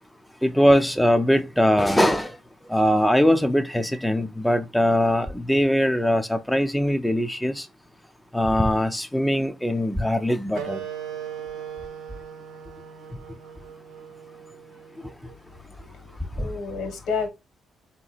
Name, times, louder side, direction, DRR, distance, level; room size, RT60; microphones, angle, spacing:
voice 1, 0.4-2.4 2.7-7.7 8.3-10.8, equal, 5° left, 0.5 m, -21 dB
Wind instrument woodwind instrument, 10.5-15.7, right 8 dB, 85° right, 0.8 m, -39 dB
voice 2, 15.7-17.3, left 5 dB, 80° left, 1.5 m, -31 dB
3.7 x 2.9 x 4.0 m
cardioid pair, 90°, 0 cm